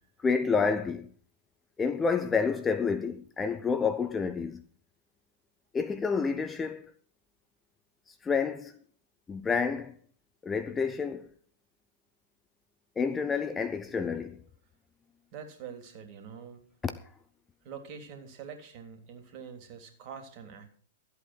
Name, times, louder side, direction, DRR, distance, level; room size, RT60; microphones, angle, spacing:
voice 1, 0.2-1.1 1.8-4.6 5.7-6.8 8.2-8.7 9.3-9.9 10.4-11.3 13.0-14.4 16.8-16.9, left 5 dB, 15° left, 0.8 m, -29 dB
voice 2, 15.3-16.6 17.6-20.7, right 7 dB, 40° right, 3.2 m, -45 dB
14.0 x 8.3 x 6.0 m
figure-of-eight pair, 105°, 0 cm